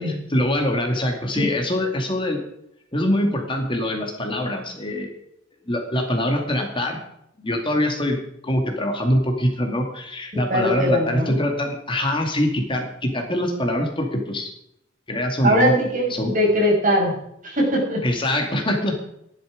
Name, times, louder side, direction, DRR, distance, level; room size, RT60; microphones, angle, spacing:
voice 1, 0.0-2.4 2.9-5.1 5.7-7.0 7.4-8.2 8.4-14.5 15.1-15.8 16.1-16.3 18.0-19.0, left 1 dB, 25° left, 2 dB, 2.3 m, -23 dB
voice 2, 10.5-11.4 15.4-17.1 17.4-18.0, equal, 45° right, -1 dB, 6.1 m, -20 dB
15.0 x 11.5 x 5.1 m, 0.77 s
head